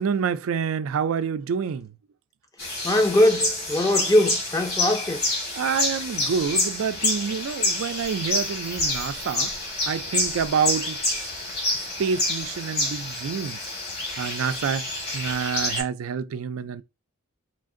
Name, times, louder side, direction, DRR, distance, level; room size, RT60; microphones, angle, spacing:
voice 1, 0.0-1.9 5.6-9.5 9.9-11.0 11.7-13.6 14.2-14.9 15.1-16.8, right 6 dB, 85° right, 0.4 m, -27 dB
sound 1, 2.6-15.8, left 2 dB, 50° left, 1.8 m, -28 dB
voice 2, 2.8-5.2, left 1 dB, 15° left, 0.6 m, -21 dB
4.4 x 2.5 x 3.7 m
head